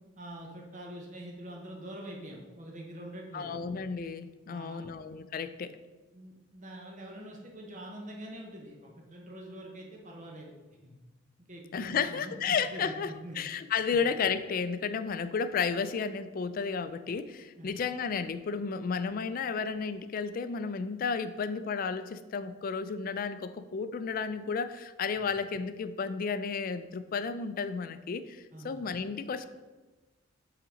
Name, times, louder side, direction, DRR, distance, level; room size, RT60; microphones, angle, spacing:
voice 1, 0.2-3.6 4.5-4.9 6.1-10.5 10.8-11.0 11.5-13.4 17.6-17.7 25.1-25.2 28.5-28.8, right 1 dB, 40° right, 0 dB, 0.9 m, -45 dB
voice 2, 3.3-5.8 11.7-29.4, left 5 dB, 45° left, 12 dB, 0.3 m, -33 dB
5.7 x 3.9 x 5.0 m, 1.2 s
head